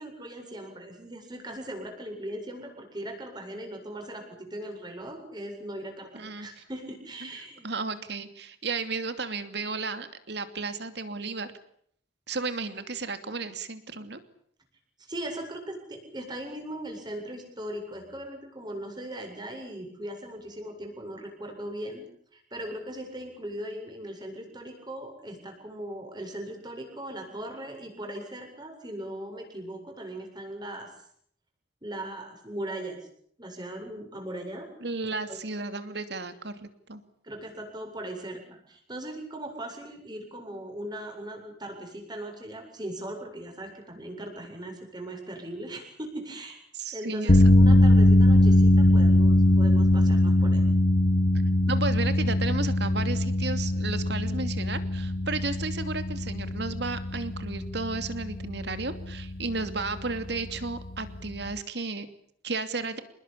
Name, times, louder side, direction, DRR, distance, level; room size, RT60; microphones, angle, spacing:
voice 1, 0.0-7.7 15.1-22.0 22.3-30.9 31.8-33.1 33.4-34.7 35.3-35.4 37.2-46.6 46.9-50.6, right 1 dB, 25° right, 3 dB, 7.6 m, -39 dB
voice 2, 6.1-6.6 7.2-7.3 7.6-11.5 12.3-14.2 34.8-37.0 46.7-47.8 51.7-62.1 62.4-63.0, right 3 dB, 65° right, 10 dB, 2.8 m, -33 dB
sound 1, 47.3-61.6, left 1 dB, 50° left, 1.3 m, -22 dB
27.5 x 21.0 x 8.7 m, 0.65 s
head